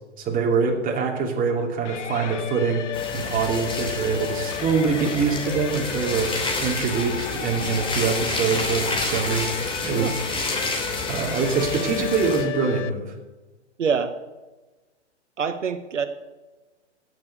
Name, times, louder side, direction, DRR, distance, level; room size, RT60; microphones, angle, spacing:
voice 1, 0.2-2.8 3.1-9.5 9.8-10.2 11.1-13.1, right 5 dB, 25° right, 1 dB, 2.8 m, -24 dB
sound 1, 1.8-12.9, left 9 dB, 80° left, 0.9 m, -33 dB
sound 2, 2.9-12.4, left 2 dB, 15° left, 2.9 m, -30 dB
voice 2, 13.8-14.1 15.4-16.1, right 6 dB, 90° right, 9 dB, 1.1 m, -25 dB
16.5 x 7.0 x 6.6 m, 1.2 s
hypercardioid pair, 120°, 35 cm